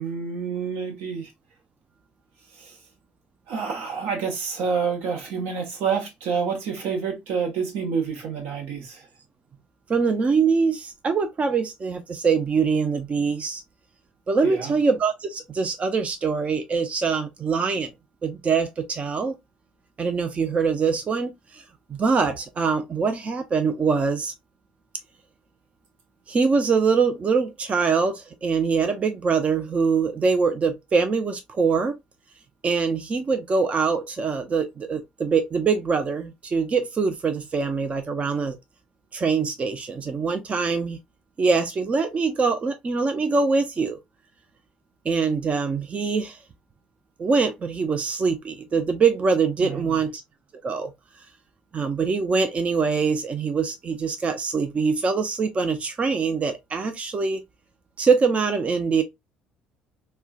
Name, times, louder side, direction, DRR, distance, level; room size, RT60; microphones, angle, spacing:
voice 1, 0.0-1.3 2.5-2.8 3.5-9.1 14.4-14.8 49.6-50.0, right 6 dB, 60° right, 1.1 m, -28 dB
voice 2, 9.9-13.6 14.3-17.9 18.2-19.4 20.0-21.6 21.9-24.3 26.3-32.0 32.6-38.6 39.1-41.0 41.4-44.0 45.0-46.4 47.2-50.2 50.6-50.9 51.7-57.4 58.0-59.0, right 5 dB, 30° right, 0.5 m, -23 dB
4.3 x 2.2 x 2.3 m
figure-of-eight pair, 55°, 4 cm